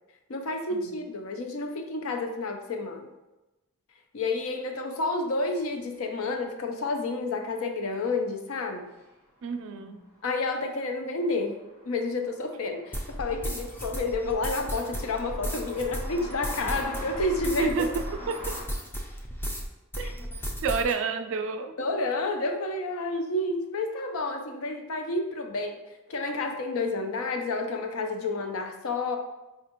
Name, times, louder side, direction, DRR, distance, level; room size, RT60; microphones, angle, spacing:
voice 1, 0.3-3.1 4.1-8.9 10.2-17.9 20.0-20.1 21.8-25.8 26.1-29.2, left 2 dB, 70° left, 4 dB, 0.5 m, -30 dB
sound 1, 5.8-5.9 6.3-6.4 8.9-9.1 9.4-9.5 9.8-18.6, equal, 30° left, 0.8 m, -45 dB
voice 2, 9.4-10.0 17.6-18.6 20.0-20.1 20.6-21.7, right 5 dB, 60° right, 7 dB, 0.3 m, -30 dB
sound 2, 12.9-19.7 19.9-20.9, equal, 10° left, 0.4 m, -34 dB
4.3 x 2.4 x 2.9 m, 1.0 s
head